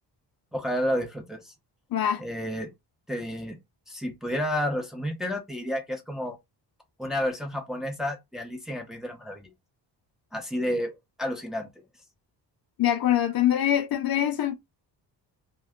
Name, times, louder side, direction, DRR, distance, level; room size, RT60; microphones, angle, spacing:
voice 1, 0.5-1.5 2.2-2.7 3.1-3.6 3.9-6.4 7.0-9.5 10.3-11.7, equal, ahead, 0.7 m, -31 dB
voice 2, 1.9-2.2 12.8-14.5, left 11 dB, 60° left, 0.5 m, -24 dB
2.6 x 2.2 x 3.5 m
cardioid pair, 120°, 42 cm